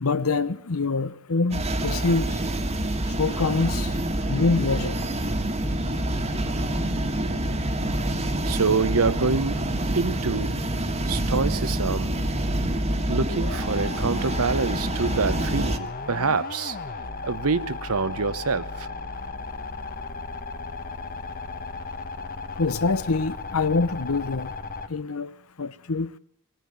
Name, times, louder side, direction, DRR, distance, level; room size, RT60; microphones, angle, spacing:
voice 1, 0.0-2.3 3.2-3.9 4.3-5.1 22.6-24.5 24.9-25.3 25.6-26.1, left 3 dB, 70° left, 0.9 m, -25 dB
sound 1, 1.5-15.8, right 1 dB, 30° right, 1.6 m, -27 dB
sound 2, 5.6-24.9, left 3 dB, 40° left, 1.2 m, -35 dB
voice 2, 8.4-9.6 9.9-10.6 11.1-12.2 13.1-16.8 17.2-18.9, right 4 dB, 75° right, 0.9 m, -26 dB
22.0 x 18.0 x 9.5 m
head